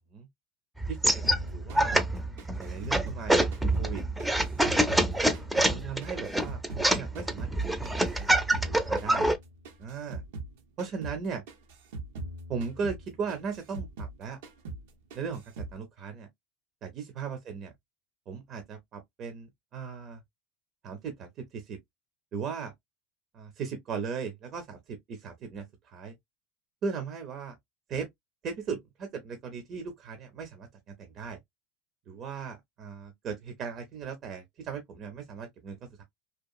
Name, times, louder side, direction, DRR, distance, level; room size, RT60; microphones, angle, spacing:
sound 1, 0.8-9.4, right 1 dB, 5° right, 0.5 m, -26 dB
sound 2, 1.2-3.9 4.2-6.9 7.2-10.5 10.8-11.2 11.5-14.2 14.4-14.9 15.1-15.8, right 2 dB, 85° right, 0.7 m, -40 dB
voice 1, 1.5-2.0 2.6-4.0 5.7-8.3 8.6-9.3 9.8-10.2 10.8-11.4 12.5-14.4 15.1-16.3 16.8-17.7 18.3-20.2 20.8-21.8 22.3-22.7 23.3-26.1 26.8-27.6 27.9-28.1 28.4-30.7 31.0-31.4 32.1-36.0, right 5 dB, 50° right, 0.6 m, -37 dB
2.9 x 2.4 x 2.3 m
supercardioid pair, 105°, 0 cm